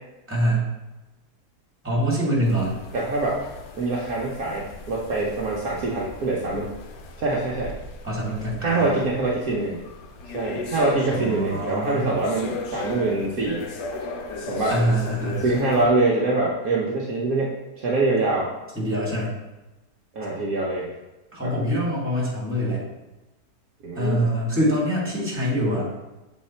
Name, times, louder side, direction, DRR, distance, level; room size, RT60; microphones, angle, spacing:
voice 1, 0.3-0.7 1.8-2.7 8.0-9.0 11.1-12.0 14.7-15.4 18.7-19.3 21.3-22.8 23.9-25.9, equal, 5° right, -6 dB, 2.1 m, -24 dB
sound 1, 2.4-15.9, left 3 dB, 80° left, 1.3 m, -37 dB
voice 2, 2.9-3.4 3.8-6.7 7.2-7.7 8.6-9.8 10.3-13.7 14.5-14.8 15.4-18.5 20.1-20.9 21.4-21.5 23.8-24.3, right 2 dB, 60° right, -4 dB, 1.2 m, -24 dB
6.6 x 4.1 x 4.3 m, 1.0 s
omnidirectional pair, 1.8 m